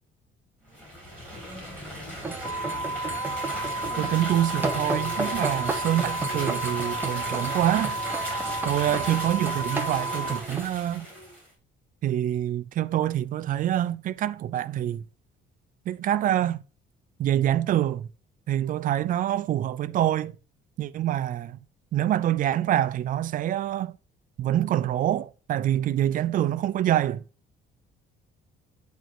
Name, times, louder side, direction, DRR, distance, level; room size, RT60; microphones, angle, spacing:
sound 1, 0.7-11.5, equal, 5° left, 3.9 m, -37 dB
sound 2, 2.2-10.6, right 3 dB, 10° right, 1.0 m, -34 dB
sound 3, 2.4-10.4, right 2 dB, 35° left, 1.2 m, -32 dB
voice 1, 4.0-8.0 8.6-11.1 12.0-15.0 15.9-16.6 17.2-18.1 18.5-20.3 20.8-21.6 21.9-24.0 24.4-27.2, right 12 dB, 45° right, 0.5 m, -26 dB
9.1 x 4.7 x 4.1 m
cardioid pair, 180°, 19 cm